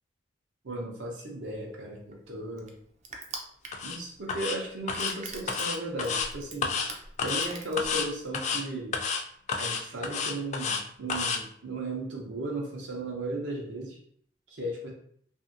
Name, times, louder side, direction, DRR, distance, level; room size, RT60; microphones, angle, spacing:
voice 1, 0.6-2.7 3.8-6.8 7.2-9.0 9.6-14.0 14.5-14.9, right 1 dB, 75° right, -2 dB, 0.8 m, -35 dB
Crushing, 1.5-8.3, right 3 dB, 40° right, 0.4 m, -45 dB
sound 1, 3.7-4.0 4.3-4.6 4.9-5.1 5.5-6.3 6.6-6.9 7.2-7.5 7.8-8.1 8.3-8.6 8.9-9.2 9.5-10.8 11.1-11.4, left 5 dB, 40° left, 0.3 m, -30 dB
2.6 x 2.6 x 2.5 m, 0.63 s
head